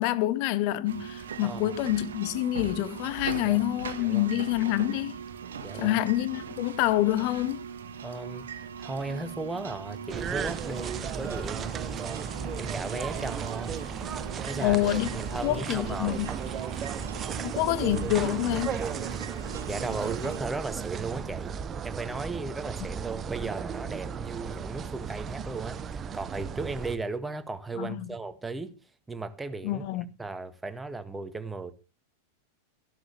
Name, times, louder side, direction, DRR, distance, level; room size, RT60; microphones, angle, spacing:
voice 1, 0.0-5.2 5.7-7.6 14.6-15.1 15.4-16.3 17.4-18.8 27.8-28.1 29.6-30.1, left 15 dB, 45° left, 1.2 m, -27 dB
sound 1, 0.9-20.4, right 7 dB, 65° right, 1.6 m, -40 dB
voice 2, 1.4-1.7 3.3-3.7 4.0-4.3 5.6-6.0 8.0-13.7 14.4-14.8 15.1-16.2 18.8-19.0 19.7-21.5 21.8-28.8 29.1-29.8 30.2-31.7, right 3 dB, 10° right, 1.8 m, -36 dB
parked at the disc golf park awaiting the phone call, 10.1-27.0, right 7 dB, 25° right, 1.0 m, -35 dB
14.5 x 12.0 x 3.5 m
figure-of-eight pair, 90°, 0 cm